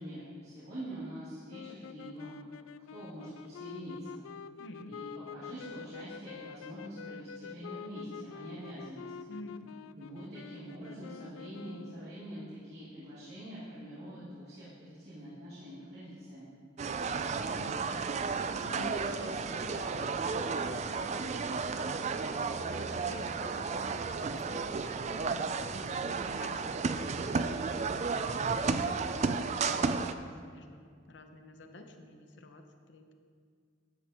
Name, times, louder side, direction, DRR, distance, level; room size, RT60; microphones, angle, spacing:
voice 1, 0.0-2.3 2.9-4.2 4.9-5.1 5.3-9.1 10.0-16.5, right 1 dB, 50° right, -12 dB, 2.8 m, -45 dB
sound 1, 1.5-12.2, left 7 dB, 90° left, 0.3 m, -47 dB
voice 2, 4.6-5.0 9.3-9.8 17.0-29.5 29.9-33.1, left 2 dB, 60° left, 5 dB, 0.8 m, -50 dB
sound 2, 16.8-30.1, right 4 dB, 35° right, 0.3 m, -33 dB
12.0 x 9.9 x 3.0 m, 2.1 s
head